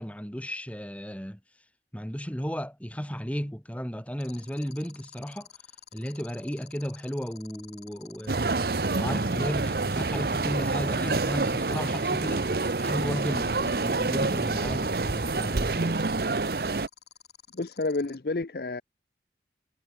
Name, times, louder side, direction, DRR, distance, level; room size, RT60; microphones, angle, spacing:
voice 1, 0.0-1.4 1.9-5.5 5.9-8.5 8.9-12.5 12.8-16.0, equal, 10° left, 3.2 m, -34 dB
sound 1, 4.2-18.1, left 9 dB, 75° left, 7.2 m, -50 dB
sound 2, 8.3-16.9, right 3 dB, 55° right, 0.9 m, -27 dB
voice 2, 17.5-18.8, left 3 dB, 55° left, 0.7 m, -30 dB
head